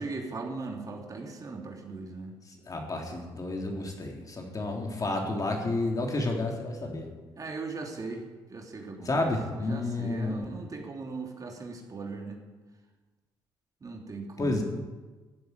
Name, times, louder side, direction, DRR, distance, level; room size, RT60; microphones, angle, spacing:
voice 1, 0.0-2.4 7.4-8.2 8.5-9.3 9.7-12.4 13.8-14.6, right 3 dB, 35° right, 2 dB, 3.0 m, -38 dB
voice 2, 2.7-7.1 9.1-10.5 14.4-14.6, left 2 dB, 35° left, 1 dB, 3.6 m, -30 dB
15.5 x 7.9 x 9.7 m, 1.3 s
supercardioid pair, 70°, 10 cm